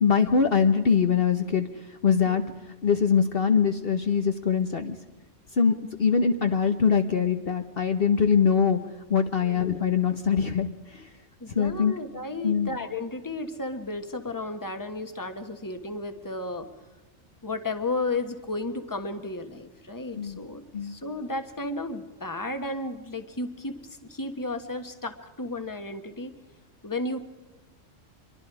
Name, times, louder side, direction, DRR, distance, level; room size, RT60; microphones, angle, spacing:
voice 1, 0.0-2.4 2.8-5.0 5.5-8.8 9.1-11.1 11.5-11.9 12.4-12.7 20.2-20.4 20.7-20.9, left 6 dB, 50° left, 7 dB, 1.2 m, -23 dB
voice 2, 11.4-16.7 17.4-26.3 26.8-27.2, left 2 dB, 15° left, 8 dB, 1.4 m, -33 dB
26.5 x 23.0 x 4.9 m, 1.1 s
omnidirectional pair, 1.3 m